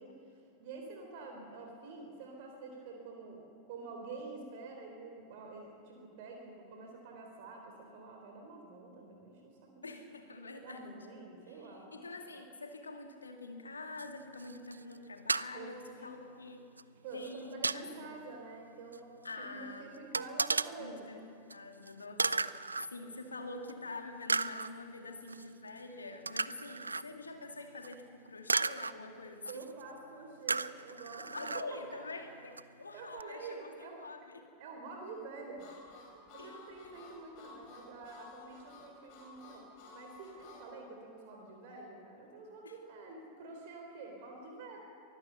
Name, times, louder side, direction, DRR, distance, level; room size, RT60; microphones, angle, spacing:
voice 1, 0.0-10.0 10.6-11.9 15.5-15.7 16.0-16.1 17.0-19.2 19.5-21.1 29.5-32.0 32.9-34.1 34.6-35.7 36.3-44.8, right 3 dB, 50° right, 1 dB, 3.5 m, -48 dB
voice 2, 9.8-11.0 11.5-16.6 17.1-18.2 19.2-20.0 20.8-29.7 31.3-34.4 36.4-36.6 36.8-36.9 42.6-42.8, left 3 dB, 75° left, 4 dB, 2.3 m, -46 dB
sound 1, 14.0-14.1 14.3-15.0 15.3-15.5 16.8-16.9 17.2-17.8 18.9-19.0 19.2-19.3 20.1-20.7 21.5-21.6 21.9-22.0 22.2-22.9 23.7-23.8 24.3-24.7 25.3-25.4 26.3-27.0 27.8-27.9 28.5-28.9 29.4-29.8 30.5-31.6 32.6-32.7 33.2-33.3, right 4 dB, 80° right, 0.4 m, -34 dB
Harmonica, 35.6-40.7, left 4 dB, 45° left, 6.2 m, -54 dB
23.5 x 16.0 x 7.0 m, 2.5 s
figure-of-eight pair, 90°, 0 cm